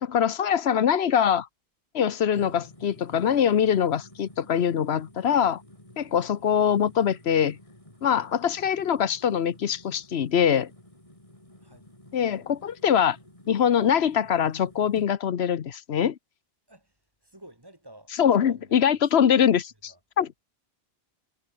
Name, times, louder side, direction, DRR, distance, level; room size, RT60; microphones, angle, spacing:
voice 1, 0.0-1.5 1.9-5.6 6.0-7.6 8.0-10.7 12.1-13.2 13.5-16.2 18.2-20.4, left 8 dB, 90° left, 1.2 m, -23 dB
sound 1, 2.3-15.1, left 1 dB, 30° left, 5.6 m, -51 dB
voice 2, 11.6-11.9 16.7-18.1 18.4-19.6 19.9-20.0, right 1 dB, 20° right, 4.4 m, -52 dB
omnidirectional pair, 1.0 m